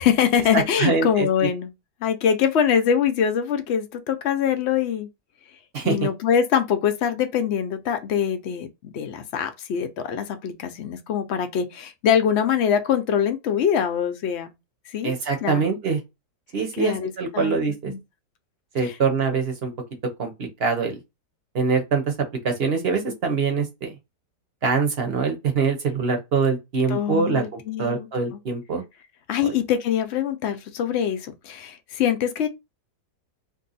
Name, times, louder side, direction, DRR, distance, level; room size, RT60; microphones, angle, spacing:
voice 1, 0.0-1.7 2.0-5.1 5.8-14.5 14.9-15.2 15.4-15.7 16.8-17.6 17.9-18.0 18.8-19.0 26.9-28.1 29.3-32.5, left 8 dB, 75° left, 0.6 m, -23 dB
voice 2, 0.5-1.3 5.7-6.0 15.0-16.0 16.5-17.9 18.7-19.7 20.2-21.0 21.5-22.1 22.4-23.9 24.6-28.8 29.4-29.5, right 5 dB, 50° right, 0.8 m, -24 dB
2.7 x 2.7 x 3.9 m
omnidirectional pair, 1.8 m